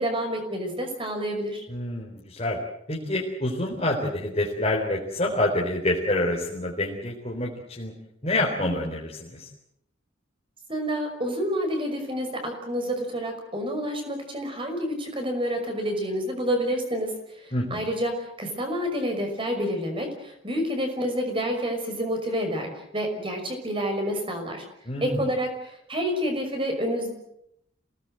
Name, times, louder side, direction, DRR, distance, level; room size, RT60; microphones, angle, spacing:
voice 1, 0.0-1.6 10.7-24.6 25.0-27.1, equal, 25° right, 5 dB, 5.7 m, -29 dB
voice 2, 1.7-2.6 2.9-7.9 8.2-9.5 17.5-17.9 24.9-25.2, left 1 dB, 30° left, -3 dB, 4.0 m, -27 dB
28.0 x 19.0 x 7.8 m, 0.77 s
head